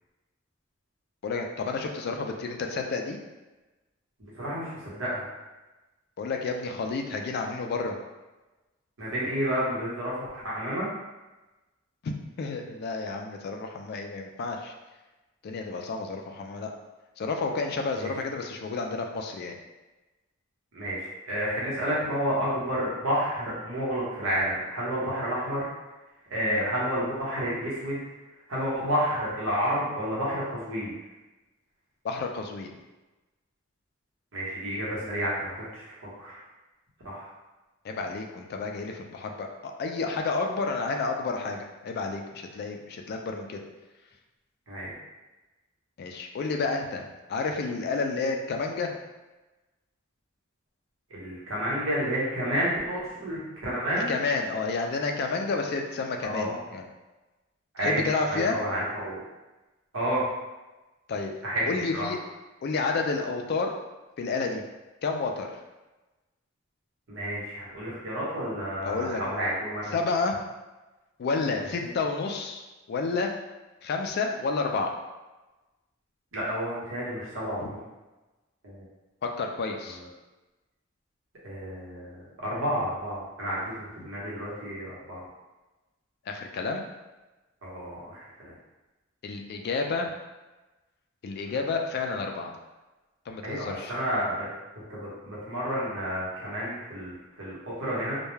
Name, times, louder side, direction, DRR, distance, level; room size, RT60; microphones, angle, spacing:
voice 1, 1.2-3.2 6.2-8.0 12.0-14.7 15.4-16.7 17.2-19.5 32.0-32.7 37.8-43.6 46.0-47.0 47.3-49.0 54.1-56.9 57.8-58.6 61.1-61.3 61.7-62.2 62.6-63.7 64.2-64.6 65.0-65.6 68.8-69.2 69.9-70.4 71.2-73.3 73.8-74.9 77.6-77.7 79.2-80.0 86.3-86.8 89.2-90.1 91.2-92.5 93.3-93.9, left 4 dB, 55° left, 3 dB, 0.3 m, -30 dB
voice 2, 4.2-5.2 9.0-10.9 17.9-18.1 20.7-25.6 26.3-28.0 28.5-30.9 34.3-35.8 36.2-36.4 37.0-37.3 44.7-44.9 51.1-54.1 56.2-56.6 57.7-58.0 58.3-59.2 59.9-60.3 61.4-62.0 67.1-69.9 71.8-71.9 76.3-77.8 78.6-78.8 81.4-85.2 87.6-88.5 91.4-91.6 93.4-94.5 94.9-98.1, equal, 80° right, -7 dB, 1.0 m, -30 dB
2.2 x 2.1 x 3.1 m, 1.1 s
head